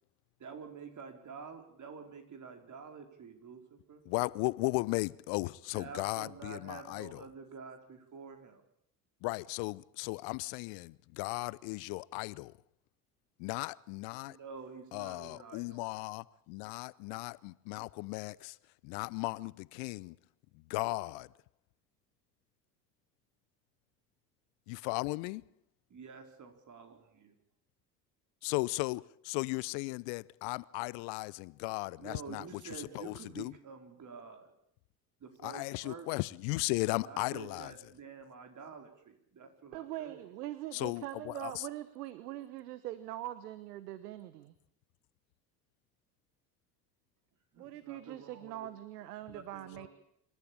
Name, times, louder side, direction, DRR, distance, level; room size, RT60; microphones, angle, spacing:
voice 1, 0.4-4.0 5.7-8.6 14.2-15.8 25.9-27.3 32.0-34.5 35.2-36.1 37.0-40.3 47.5-48.7 49.3-49.9, right 5 dB, 40° right, 4.6 m, -48 dB
voice 2, 4.1-7.2 9.2-12.5 13.4-14.4 14.9-18.6 18.8-20.2 20.7-21.3 24.7-25.4 28.4-32.4 32.9-33.5 35.4-37.7 40.7-41.7, left 25 dB, 60° left, 0.8 m, -36 dB
voice 3, 39.7-44.5 47.6-49.9, right 14 dB, 75° right, 1.2 m, -42 dB
26.0 x 13.0 x 8.9 m
hypercardioid pair, 65°, 47 cm